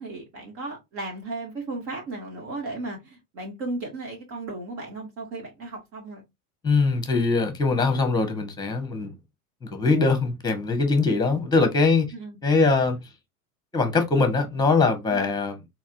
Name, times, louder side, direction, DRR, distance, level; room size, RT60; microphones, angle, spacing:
voice 1, 0.0-6.2 12.1-12.4 15.1-15.3, right 2 dB, 50° right, 2.0 m, -35 dB
voice 2, 6.6-9.1 9.6-12.1 12.4-13.0 13.7-15.6, left 3 dB, 10° left, 1.2 m, -22 dB
4.1 x 3.0 x 2.5 m
hypercardioid pair, 90°, 45 cm